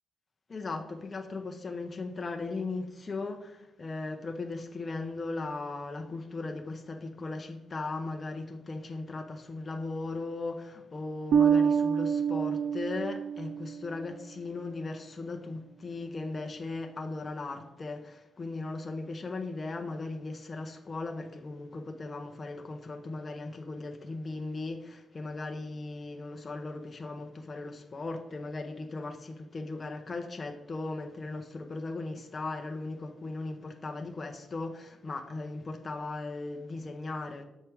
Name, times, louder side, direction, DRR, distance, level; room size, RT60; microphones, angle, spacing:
voice 1, 0.5-37.4, left 3 dB, 30° left, 0.6 m, -37 dB
Bass guitar, 11.3-14.0, right 7 dB, 75° right, 0.3 m, -26 dB
7.2 x 4.5 x 3.4 m
cardioid pair, 115°, 0 cm